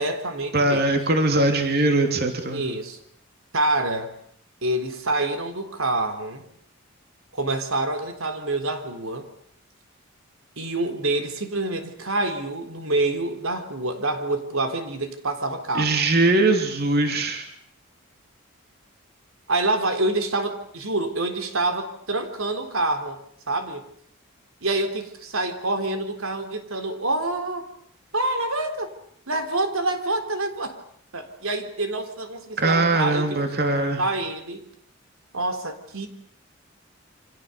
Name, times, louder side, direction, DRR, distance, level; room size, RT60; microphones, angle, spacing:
voice 1, 0.0-0.9 2.5-3.0 3.5-4.1 4.6-6.4 7.3-9.3 10.6-15.9 19.5-23.2 23.5-23.8 24.6-27.7 28.1-28.9 29.3-30.8 31.1-33.4 34.0-34.6 35.3-36.1, right 2 dB, 75° right, 6 dB, 3.7 m, -26 dB
voice 2, 0.5-2.6 15.7-17.4 32.6-34.0, right 2 dB, 45° right, 5 dB, 3.0 m, -21 dB
29.0 x 26.5 x 6.9 m, 0.64 s
head